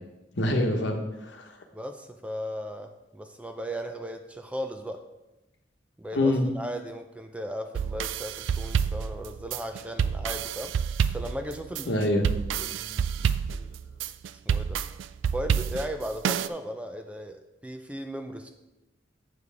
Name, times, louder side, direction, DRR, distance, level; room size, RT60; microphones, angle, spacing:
voice 1, 0.4-1.5 6.1-6.5 11.9-12.3 13.5-13.6, left 1 dB, 65° left, 3 dB, 1.0 m, -25 dB
voice 2, 1.7-5.0 6.0-10.7 11.1-12.0 12.6-13.4 14.5-14.8 15.3-18.5, equal, 5° right, 6 dB, 0.4 m, -36 dB
sound 1, 7.8-16.5, right 7 dB, 80° right, 0.3 m, -28 dB
8.0 x 7.1 x 3.4 m, 0.98 s
head